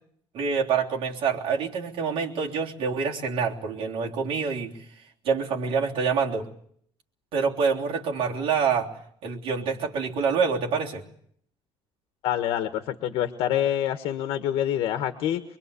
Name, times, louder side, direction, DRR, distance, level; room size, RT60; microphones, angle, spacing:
voice 1, 0.3-4.8 5.2-6.5 7.3-8.9 9.2-11.0, right 5 dB, 70° right, 0 dB, 3.4 m, -26 dB
voice 2, 12.2-15.4, left 11 dB, 90° left, 8 dB, 1.5 m, -26 dB
24.5 x 23.0 x 8.4 m, 0.65 s
cardioid pair, 170°, 9 cm